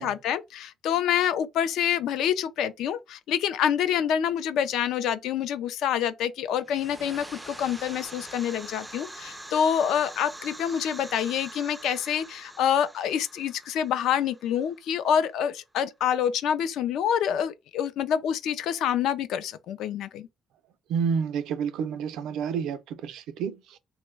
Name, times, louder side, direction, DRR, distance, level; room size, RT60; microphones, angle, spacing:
voice 1, 0.0-20.3, left 9 dB, 70° left, 0.4 m, -27 dB
sound 1, 6.6-15.2, right 1 dB, 5° right, 0.3 m, -44 dB
voice 2, 20.9-23.8, right 6 dB, 80° right, 0.4 m, -29 dB
2.9 x 2.1 x 3.3 m
cardioid pair, 145°, 0 cm